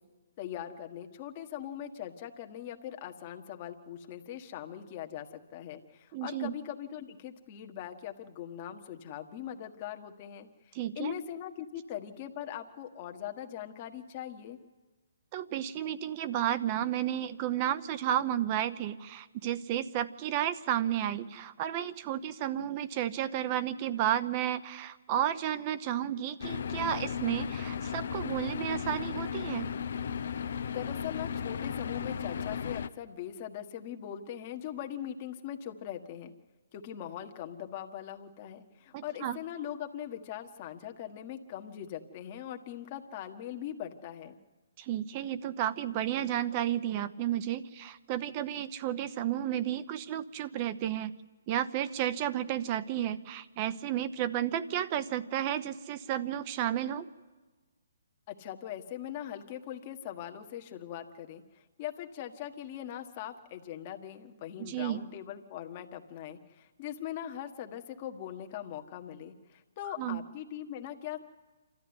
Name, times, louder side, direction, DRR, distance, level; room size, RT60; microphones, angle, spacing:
voice 1, 0.4-14.6 30.6-36.3 36.7-44.4 58.3-71.2, left 10 dB, 35° left, 5 dB, 1.5 m, -41 dB
voice 2, 6.1-6.5 10.7-11.1 15.3-29.7 38.9-39.4 44.8-51.1 51.5-57.1 64.6-65.0 70.0-70.2, right 11 dB, 35° right, 13 dB, 0.8 m, -32 dB
sound 1, 26.4-32.9, left 7 dB, 65° left, 0.6 m, -35 dB
27.5 x 13.0 x 9.7 m, 1.3 s
hypercardioid pair, 145°, 0 cm